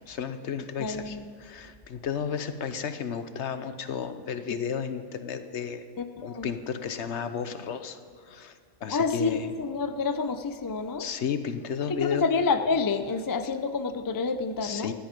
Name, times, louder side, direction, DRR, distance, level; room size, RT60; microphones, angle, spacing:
voice 1, 0.1-5.8 6.2-8.5 8.8-9.5 11.0-12.2 14.6-14.9, left 7 dB, 65° left, 10 dB, 1.1 m, -33 dB
voice 2, 0.8-1.3 6.0-6.5 8.9-11.1 11.9-14.9, left 4 dB, 30° left, 9 dB, 0.4 m, -28 dB
15.5 x 11.5 x 5.2 m, 2.3 s
omnidirectional pair, 1.3 m